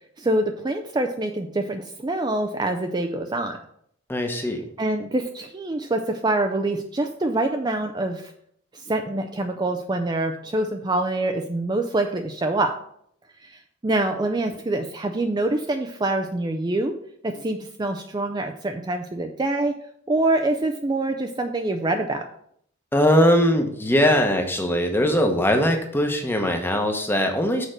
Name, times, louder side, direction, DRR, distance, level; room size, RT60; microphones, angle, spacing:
voice 1, 0.2-3.6 4.4-4.5 4.8-8.3 8.7-12.7 13.4-16.9 17.2-19.7 20.1-22.3, right 2 dB, 20° right, 5 dB, 0.4 m, -25 dB
voice 2, 4.1-4.6 22.9-27.7, equal, 10° left, 4 dB, 0.9 m, -21 dB
6.6 x 4.6 x 6.5 m, 0.69 s
head